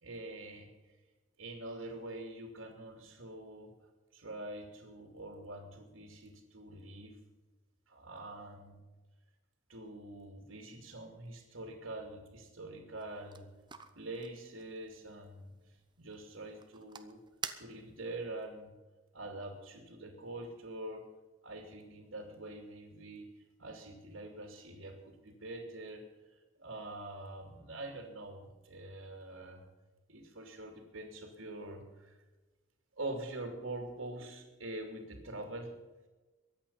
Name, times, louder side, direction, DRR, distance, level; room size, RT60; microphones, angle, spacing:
voice 1, 0.0-1.0 1.4-3.7 4.1-7.2 7.9-8.8 9.7-13.5 13.9-17.2 17.6-18.7 19.1-21.0 21.4-26.0 26.3-29.7 30.1-32.2 33.0-35.7, right 2 dB, 80° right, 2 dB, 2.6 m, -45 dB
sound 1, 13.0-18.2, right 6 dB, 25° right, 0.9 m, -50 dB
23.0 x 8.5 x 5.7 m, 1.2 s
head